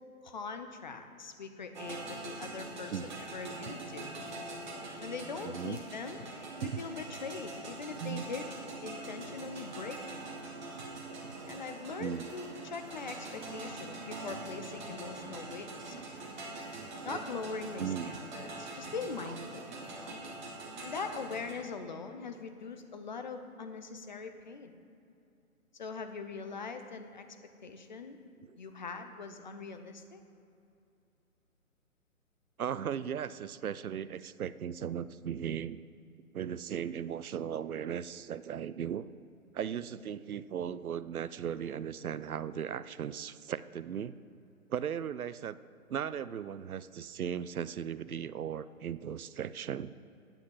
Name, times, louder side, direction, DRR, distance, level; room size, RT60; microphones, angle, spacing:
voice 1, 0.2-4.1 5.0-6.2 6.6-8.5 8.8-10.6 11.4-16.2 17.0-20.2 20.8-24.7 25.8-27.2 27.6-28.2 28.6-30.2, left 4 dB, 35° left, 7 dB, 0.6 m, -42 dB
sound 1, 1.7-21.5, right 2 dB, 35° right, 1.4 m, -43 dB
voice 2, 5.4-5.8 6.6-6.8 8.0-8.2 12.0-12.3 15.9-16.0 16.7-17.2 17.8-18.2 19.2-19.3 28.4-28.6 32.6-35.8 36.3-39.1 39.5-44.2 44.7-45.6 45.9-49.9, right 8 dB, 80° right, 16 dB, 0.5 m, -37 dB
9.0 x 5.9 x 7.5 m, 2.6 s
figure-of-eight pair, 140°, 42 cm